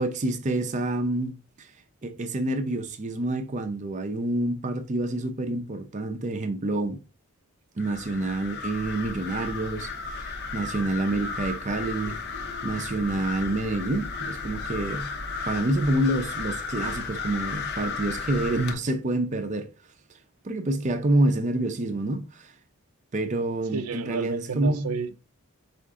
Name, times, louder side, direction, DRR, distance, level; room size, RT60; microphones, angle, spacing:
voice 1, 0.0-1.7 2.0-7.0 7.8-12.2 12.6-15.1 15.5-19.7 20.4-22.5 23.1-24.9, right 2 dB, 35° right, 0.5 m, -27 dB
sound 1, 7.8-18.7, left 4 dB, 50° left, 0.6 m, -34 dB
voice 2, 23.7-25.2, right 5 dB, 90° right, 0.5 m, -31 dB
4.7 x 2.5 x 3.5 m
head